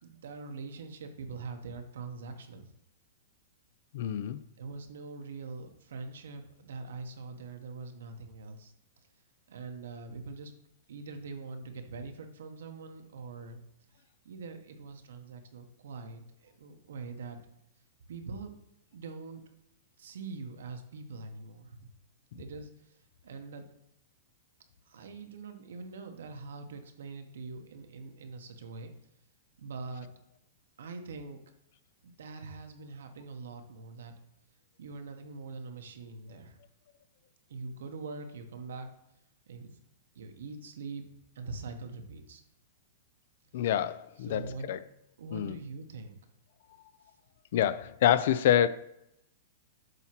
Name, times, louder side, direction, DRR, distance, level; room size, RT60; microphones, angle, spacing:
voice 1, 0.0-2.7 4.6-8.7 9.5-10.5 10.9-13.6 14.2-17.4 18.1-18.6 18.9-19.4 20.0-21.9 22.3-22.7 23.2-23.6 24.9-28.9 29.6-30.1 30.8-31.4 32.0-34.1 34.8-36.6 37.5-38.9 39.5-39.7 40.1-41.0 41.3-42.4 43.6-43.7 44.2-44.7 45.2-46.1, right 4 dB, 80° right, 6 dB, 1.1 m, -43 dB
voice 2, 3.9-4.4 43.5-44.8 45.3-45.6 47.5-48.7, left 10 dB, 50° left, 15 dB, 0.4 m, -27 dB
8.0 x 2.8 x 5.9 m, 0.81 s
supercardioid pair, 170°, 0 cm